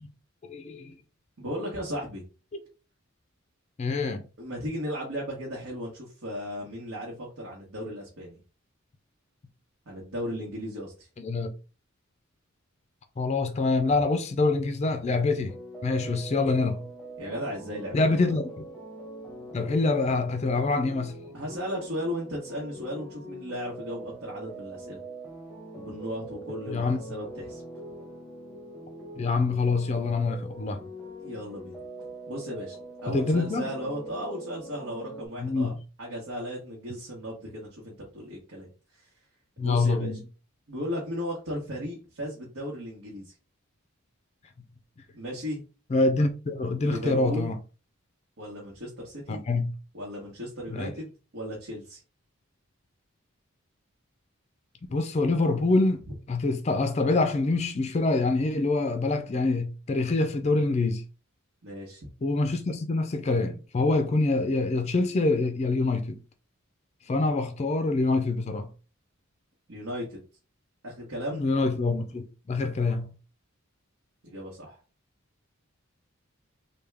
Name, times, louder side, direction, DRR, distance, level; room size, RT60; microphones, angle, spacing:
voice 1, 0.5-0.9 2.5-2.6 3.8-4.2 11.2-11.5 13.2-15.5 15.8-16.8 17.9-18.6 19.5-21.2 26.7-27.0 29.2-30.8 33.1-33.6 35.4-35.7 39.6-40.2 45.9-47.6 49.3-49.7 50.7-50.9 54.9-61.0 62.2-66.2 67.1-68.7 71.3-73.1, left 3 dB, 30° left, 0.3 m, -25 dB
voice 2, 1.4-2.2 4.4-8.4 9.9-10.9 17.2-18.2 21.3-25.0 25.7-27.6 31.2-31.8 32.3-32.8 33.0-38.7 39.0-39.1 39.6-40.1 40.7-43.3 45.1-45.6 46.8-47.5 48.4-49.4 49.9-52.0 61.6-62.1 69.7-70.2 70.8-71.4 74.2-74.8, equal, 80° right, 1.1 m, -36 dB
sound 1, 15.3-35.3, right 1 dB, ahead, 0.7 m, -43 dB
3.4 x 2.2 x 3.3 m
head